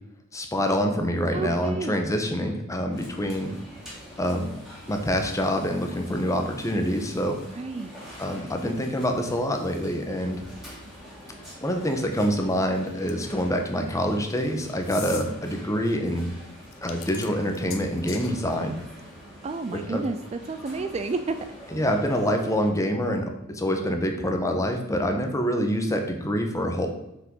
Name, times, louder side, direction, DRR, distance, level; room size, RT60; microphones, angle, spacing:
voice 1, 0.3-3.6 4.2-4.5 4.9-7.4 8.2-10.4 11.6-16.3 16.8-18.7 19.9-20.0 21.7-26.9, equal, 15° left, 4 dB, 1.0 m, -26 dB
voice 2, 1.3-1.9 7.5-7.9 19.4-21.4, right 3 dB, 30° right, 9 dB, 0.4 m, -30 dB
sound 1, 2.9-22.7, equal, ahead, 2.6 m, -45 dB
Opening bottle with falling cap, 13.1-13.5 14.8-15.3 16.7-18.3, left 9 dB, 70° left, 0.8 m, -39 dB
6.3 x 5.4 x 5.3 m, 0.87 s
head